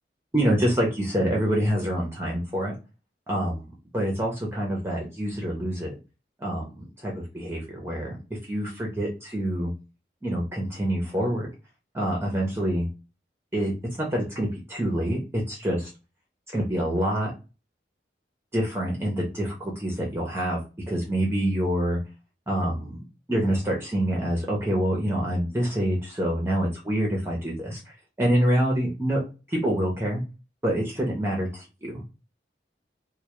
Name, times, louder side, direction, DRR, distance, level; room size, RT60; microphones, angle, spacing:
voice 1, 0.3-2.7 3.3-5.9 6.4-8.2 8.4-9.7 10.2-11.5 11.9-12.9 13.5-13.7 14.0-15.9 16.5-17.3 18.5-20.6 20.9-22.0 22.5-23.0 23.3-29.2 29.5-30.2 30.6-32.0, equal, 15° right, -2 dB, 0.5 m, -26 dB
2.1 x 2.0 x 2.9 m, 0.30 s
head